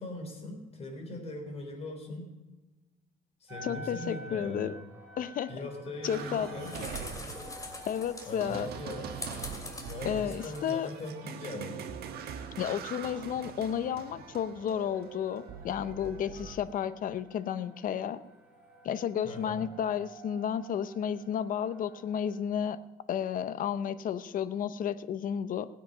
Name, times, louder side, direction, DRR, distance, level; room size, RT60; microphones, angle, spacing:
voice 1, 0.0-2.3 3.4-4.8 5.5-6.7 8.3-9.2 9.9-11.8 19.2-19.7, left 2 dB, 40° left, 3 dB, 3.8 m, -40 dB
sound 1, 3.5-22.4, equal, 5° right, 4.6 m, -52 dB
voice 2, 3.6-4.8 5.2-5.5 6.0-6.5 6.8-6.9 7.9-8.7 10.0-10.9 12.6-18.2 18.8-22.8 23.1-25.7, left 9 dB, 55° left, 14 dB, 0.8 m, -32 dB
sound 2, 6.0-16.6, right 7 dB, 70° right, 1.5 m, -43 dB
sound 3, 6.1-11.1, left 2 dB, 20° left, 2.6 m, -44 dB
19.0 x 8.5 x 5.5 m, 1.2 s
cardioid pair, 110°, 17 cm